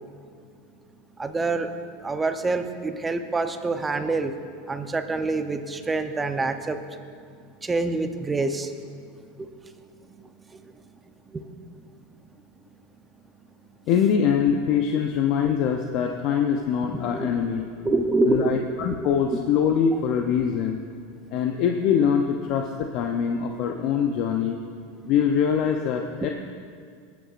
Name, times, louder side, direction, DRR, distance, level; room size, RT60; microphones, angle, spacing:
voice 1, 1.2-1.8 2.0-4.3 4.7-6.8 7.6-8.7 9.4-9.5 10.2-10.7 11.3-11.5 16.9-17.3 17.8-19.4, right 3 dB, 15° right, 8 dB, 0.7 m, -26 dB
voice 2, 13.9-17.7 18.3-20.8 21.3-24.6 25.0-26.3, left 7 dB, 55° left, 3 dB, 0.6 m, -23 dB
19.0 x 9.4 x 2.5 m, 2.2 s
supercardioid pair, 115°, 0 cm